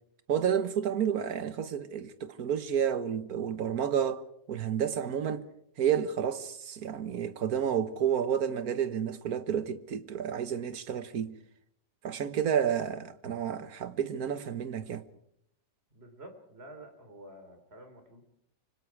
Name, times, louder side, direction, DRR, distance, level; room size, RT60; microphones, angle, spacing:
voice 1, 0.3-4.2 4.5-5.4 5.8-11.3 12.0-15.0, right 8 dB, 60° right, 1.6 m, -30 dB
voice 2, 15.9-18.2, right 1 dB, 35° right, 3.9 m, -49 dB
26.0 x 25.0 x 4.8 m
omnidirectional pair, 1.8 m